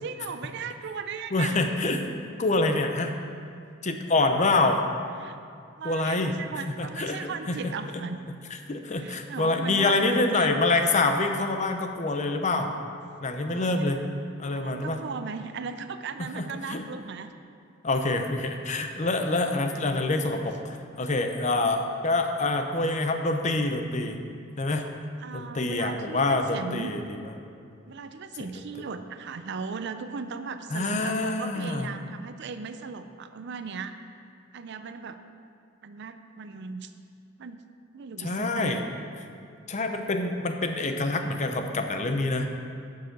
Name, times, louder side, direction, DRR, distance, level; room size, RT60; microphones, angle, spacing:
voice 1, 0.0-1.9 5.2-5.4 5.8-8.2 8.9-10.6 13.5-13.9 14.5-17.3 25.2-26.9 27.9-33.9 34.5-35.2 35.8-36.9 37.4-37.6 37.9-38.7, right 5 dB, 60° right, 9 dB, 0.5 m, -37 dB
voice 2, 1.3-2.1 2.4-3.1 3.8-4.8 5.8-6.4 6.8-8.0 8.7-12.7 13.2-14.0 14.4-15.0 16.4-16.8 17.8-24.2 24.6-24.9 25.3-27.3 28.4-28.8 30.7-31.9 38.2-38.8 39.7-42.5, left 2 dB, 35° left, 6 dB, 0.7 m, -26 dB
11.0 x 6.7 x 5.3 m, 2.4 s
head